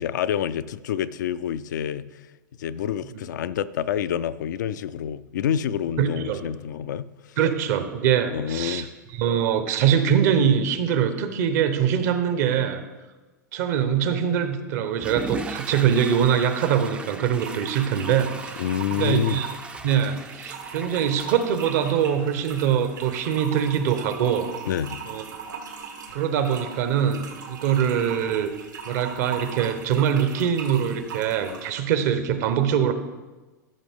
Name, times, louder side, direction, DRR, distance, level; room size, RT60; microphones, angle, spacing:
voice 1, 0.0-2.1 2.6-7.4 8.3-8.9 18.6-19.4 24.7-25.0, left 9 dB, 75° left, 14 dB, 0.4 m, -27 dB
voice 2, 6.0-6.4 7.4-8.9 9.1-12.8 13.5-18.6 18.9-19.5 19.8-24.5 25.1-25.6 26.1-28.5 28.8-32.9, right 8 dB, 60° right, 9 dB, 0.9 m, -23 dB
Water / Toilet flush, 14.9-22.7, right 4 dB, 10° right, 0.4 m, -38 dB
sound 1, 17.3-31.7, right 6 dB, 85° right, 1.5 m, -39 dB
13.0 x 5.6 x 3.6 m, 1.2 s
hypercardioid pair, 110°, 10 cm